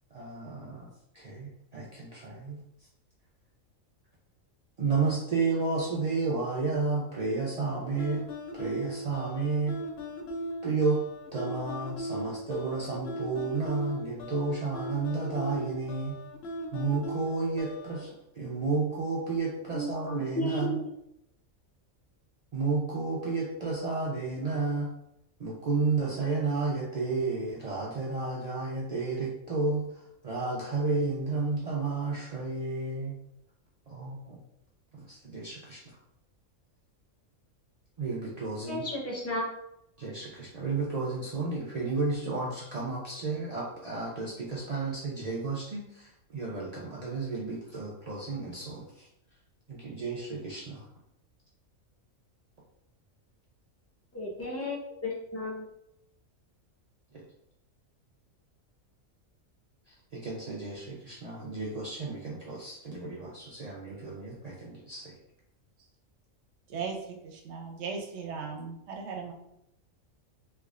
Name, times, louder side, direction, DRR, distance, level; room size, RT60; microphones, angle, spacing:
voice 1, 0.1-0.9 1.1-2.6 4.8-8.2 8.5-9.8 10.6-11.0 11.3-16.2 16.7-20.8 22.5-24.9 25.4-33.2 33.9-34.4 34.9-35.8 38.0-38.8 40.0-49.1 49.7-50.8 57.1-57.2 60.1-65.1, right 3 dB, 85° right, -5 dB, 0.3 m, -32 dB
sound 1, 8.0-18.1, equal, 65° left, 0.6 m, -38 dB
voice 2, 20.4-20.9 38.7-39.4 54.1-55.6, left 1 dB, 15° left, -3 dB, 0.5 m, -33 dB
voice 3, 66.7-69.3, right 5 dB, 65° right, 2 dB, 0.8 m, -37 dB
3.3 x 3.2 x 2.4 m, 0.80 s
omnidirectional pair, 1.4 m